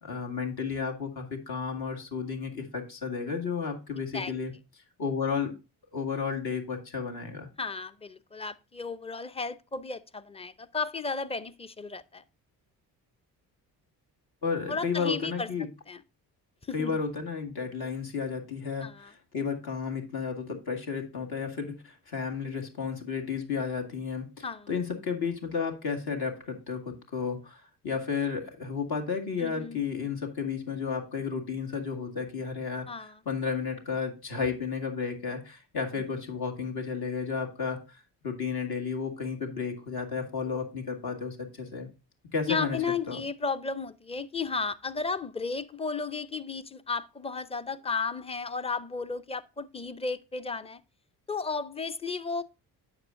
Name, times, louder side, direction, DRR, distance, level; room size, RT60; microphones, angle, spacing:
voice 1, 0.0-4.5 5.0-5.6 5.9-7.5 14.4-15.7 16.7-41.9 42.3-42.8 43.1-43.2, left 5 dB, 55° left, 2.0 m, -33 dB
voice 2, 7.6-12.2 14.7-15.5 15.9-16.0 16.7-16.9 18.8-19.1 24.4-24.7 29.4-29.8 32.9-33.2 36.0-36.1 42.5-50.8 51.3-52.4, left 4 dB, 15° left, 0.6 m, -34 dB
9.6 x 6.4 x 2.6 m
supercardioid pair, 55°, 44 cm